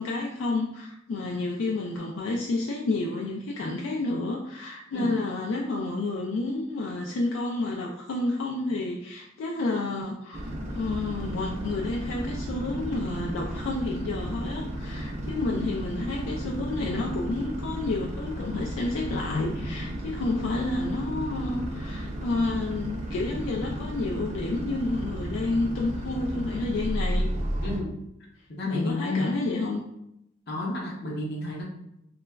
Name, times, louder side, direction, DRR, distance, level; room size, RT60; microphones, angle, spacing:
voice 1, 0.0-10.4 10.7-27.3 28.6-29.8, left 2 dB, 85° left, -1 dB, 0.3 m, -30 dB
sound 1, 10.3-27.8, equal, 35° right, 0.4 m, -33 dB
voice 2, 27.6-28.0 28.5-29.3 30.5-31.6, left 2 dB, 60° left, -2 dB, 0.7 m, -30 dB
2.9 x 2.2 x 2.3 m, 0.80 s
head